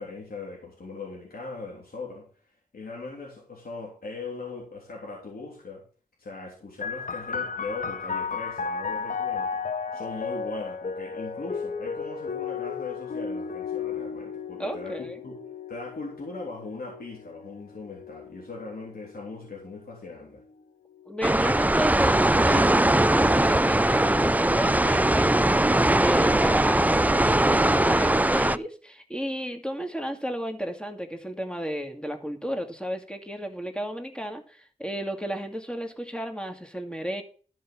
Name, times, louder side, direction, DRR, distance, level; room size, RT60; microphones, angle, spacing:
voice 1, 0.0-2.3 2.7-5.8 6.2-9.6 9.9-15.3 15.7-20.4, left 3 dB, 80° left, -2 dB, 3.4 m, -39 dB
sound 1, 6.8-20.0 20.9-21.7, left 5 dB, 60° left, 1.2 m, -34 dB
voice 2, 14.6-15.2 21.1-25.5 26.0-37.2, equal, 5° left, 5 dB, 2.3 m, -33 dB
sound 2, 21.2-28.6, right 1 dB, 10° right, 0.5 m, -21 dB
12.5 x 5.5 x 6.1 m, 0.42 s
cardioid pair, 45°, 15 cm